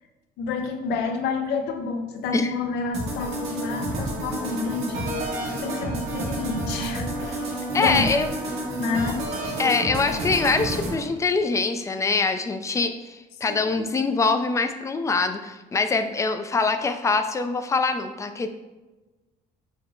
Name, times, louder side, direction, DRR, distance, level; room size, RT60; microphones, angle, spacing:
voice 1, 0.4-8.1 8.8-9.2 13.5-13.9, left 4 dB, 85° left, 5 dB, 0.6 m, -29 dB
sound 1, 2.9-11.0, right 1 dB, 80° right, 1.2 m, -30 dB
voice 2, 7.7-8.3 9.6-18.5, left 4 dB, 20° left, 8 dB, 0.3 m, -24 dB
4.9 x 2.1 x 4.3 m, 1.1 s
cardioid pair, 110°, 17 cm